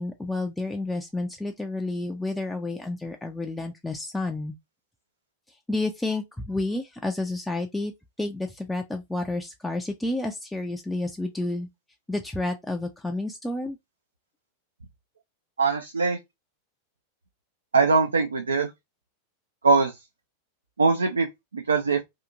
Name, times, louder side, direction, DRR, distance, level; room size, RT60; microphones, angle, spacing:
voice 1, 0.0-4.6 5.7-7.9 8.2-11.7 12.1-13.8, left 2 dB, 5° left, 0.4 m, -30 dB
voice 2, 15.6-16.2 17.7-18.7 19.6-20.0 20.8-22.0, right 4 dB, 75° right, 0.3 m, -22 dB
2.8 x 2.4 x 2.4 m
figure-of-eight pair, 90°, 0 cm